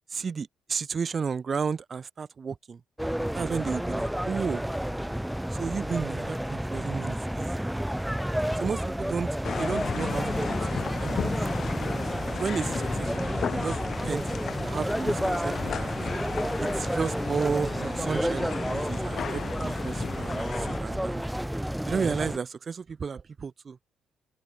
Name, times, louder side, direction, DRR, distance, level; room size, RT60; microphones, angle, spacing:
voice 1, 0.1-2.8 3.3-4.6 5.5-7.6 8.6-9.3 9.6-11.6 12.4-13.1 13.4-13.8 14.0-14.4 14.6-15.9 16.6-21.2 21.9-23.8, right 5 dB, 35° right, 2.4 m, -33 dB
sound 1, 3.0-22.4, equal, 5° right, 0.8 m, -30 dB
sound 2, 9.4-20.8, left 8 dB, 50° left, 0.7 m, -36 dB
open air
cardioid pair, 120°, 0 cm